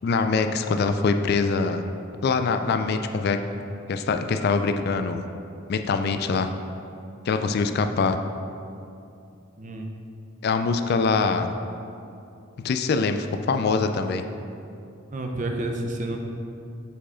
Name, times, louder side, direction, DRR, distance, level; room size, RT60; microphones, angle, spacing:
voice 1, 0.0-1.8 2.2-3.4 3.9-5.2 5.7-6.5 7.3-8.2 10.4-11.5 12.6-14.2, left 4 dB, 50° left, 8 dB, 0.3 m, -23 dB
voice 2, 9.6-9.9 15.1-16.2, right 2 dB, 40° right, 3 dB, 0.6 m, -29 dB
7.0 x 4.7 x 4.3 m, 2.6 s
head